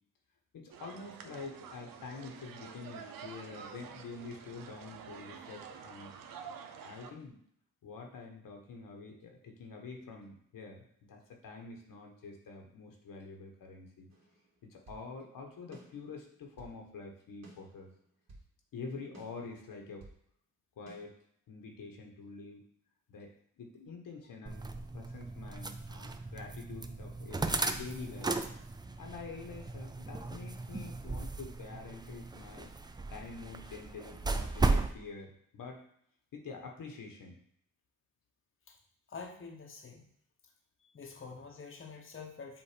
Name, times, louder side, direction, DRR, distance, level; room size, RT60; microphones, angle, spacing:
voice 1, 0.5-6.1 6.8-7.4 7.8-14.1 14.7-17.9 18.7-20.1 20.8-21.1 21.5-22.6 23.1-28.3 29.0-32.7 33.1-35.8 36.3-37.4, left 4 dB, 75° left, 1 dB, 1.3 m, -47 dB
sound 1, 0.7-7.1, right 7 dB, 85° right, 0.7 m, -49 dB
sound 2, 14.1-15.1 15.7-16.8 17.4-18.5 19.1-20.2 20.9-21.0, right 2 dB, 50° right, 1.9 m, -56 dB
sound 3, 24.5-34.9, right 3 dB, 15° right, 0.4 m, -36 dB
voice 2, 39.1-40.1 40.8-42.6, left 5 dB, 40° left, 1 dB, 0.9 m, -47 dB
7.4 x 2.6 x 5.1 m, 0.69 s
cardioid pair, 105°, 33 cm